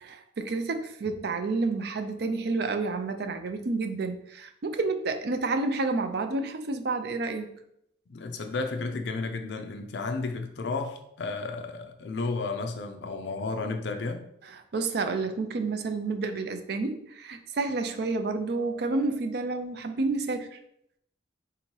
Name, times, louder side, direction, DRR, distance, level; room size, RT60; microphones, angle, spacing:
voice 1, 0.1-7.5 14.5-20.6, right 3 dB, 55° right, 8 dB, 0.4 m, -30 dB
voice 2, 8.1-14.3, left 3 dB, 65° left, 5 dB, 0.4 m, -32 dB
3.6 x 2.9 x 4.4 m, 0.74 s
head